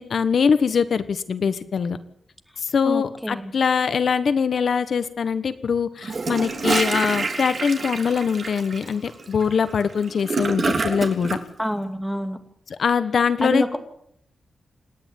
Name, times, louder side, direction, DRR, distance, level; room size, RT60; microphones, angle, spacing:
voice 1, 0.0-2.0 2.6-11.4 12.7-13.8, left 6 dB, 60° left, 12 dB, 1.3 m, -22 dB
voice 2, 2.8-3.5 11.6-12.4 13.4-13.8, equal, ahead, 6 dB, 2.5 m, -26 dB
Gurgling / Toilet flush, 6.0-11.4, right 3 dB, 40° right, 3.5 m, -26 dB
28.0 x 10.5 x 9.4 m, 0.70 s
wide cardioid pair, 155°, 0 cm